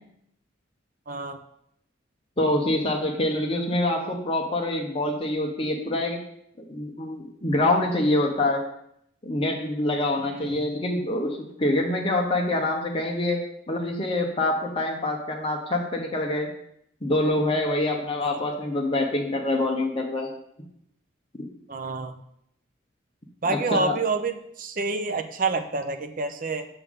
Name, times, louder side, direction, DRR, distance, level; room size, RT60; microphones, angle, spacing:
voice 1, 1.1-1.4 10.3-10.6 18.2-18.4 21.7-22.1 23.4-26.7, right 3 dB, 45° right, 6 dB, 0.6 m, -28 dB
voice 2, 2.4-6.2 6.7-8.6 9.2-13.4 13.7-16.5 17.0-20.3 21.3-21.5 23.5-24.0, left 1 dB, 25° left, 0 dB, 0.8 m, -25 dB
7.0 x 6.8 x 3.6 m, 0.74 s
head